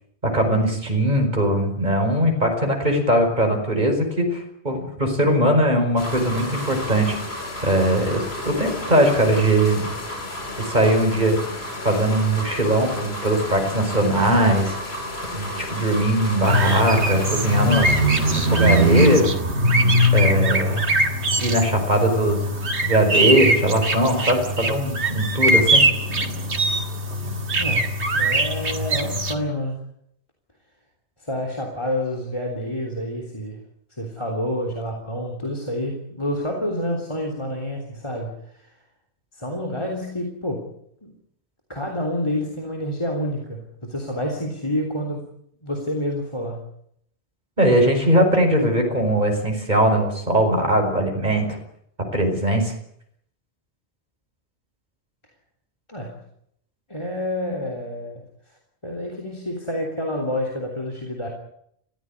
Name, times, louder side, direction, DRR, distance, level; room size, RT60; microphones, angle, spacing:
voice 1, 0.3-7.2 7.6-9.9 10.6-11.4 11.8-14.8 15.3-17.9 18.5-19.3 20.1-20.9 21.4-22.5 22.8-25.8 47.6-51.5 52.1-52.7, right 1 dB, 40° right, 4 dB, 5.4 m, -20 dB
sound 1, 6.0-19.2, left 1 dB, 70° left, 3.7 m, -32 dB
sound 2, 16.4-29.3, right 1 dB, 85° right, 2.4 m, -21 dB
voice 2, 27.6-29.8 31.2-33.6 33.9-38.8 39.3-40.7 41.0-41.1 41.7-45.3 45.6-46.7 55.9-56.2 56.9-58.2 58.8-61.3, left 1 dB, 25° left, 2 dB, 3.4 m, -28 dB
21.0 x 16.0 x 9.9 m, 0.73 s
omnidirectional pair, 1.1 m